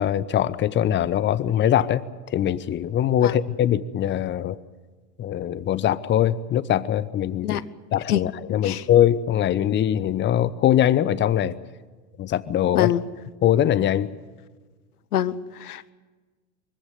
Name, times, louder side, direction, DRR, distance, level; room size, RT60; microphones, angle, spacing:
voice 1, 0.0-4.6 5.2-7.6 7.9-11.6 12.2-12.9 13.4-14.1, left 10 dB, 25° left, 18 dB, 0.9 m, -22 dB
voice 2, 15.1-15.9, left 11 dB, 70° left, 17 dB, 1.0 m, -25 dB
24.0 x 15.5 x 9.5 m, 1.3 s
figure-of-eight pair, 80°, 48 cm